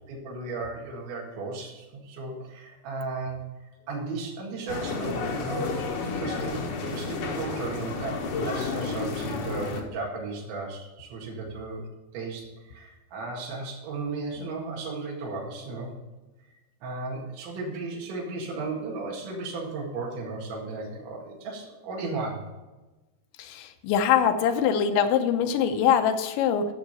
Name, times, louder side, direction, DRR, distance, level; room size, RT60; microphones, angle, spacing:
voice 1, 0.1-3.5 3.8-5.7 6.1-11.8 12.1-15.9 16.8-22.5, right 3 dB, 85° right, -2 dB, 4.3 m, -35 dB
sound 1, 4.7-9.8, left 4 dB, 70° left, 1.5 m, -31 dB
voice 2, 23.4-26.7, left 8 dB, 85° left, 7 dB, 3.2 m, -23 dB
14.5 x 6.7 x 4.2 m, 1.1 s
omnidirectional pair, 5.1 m